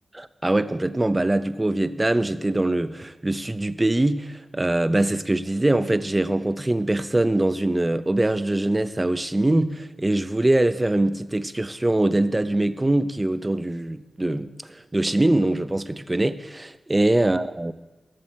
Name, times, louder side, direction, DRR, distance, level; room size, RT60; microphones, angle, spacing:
voice 1, 0.1-17.7, right 1 dB, 20° right, 0.7 m, -23 dB
15.5 x 13.0 x 4.4 m
cardioid pair, 70°, 0 cm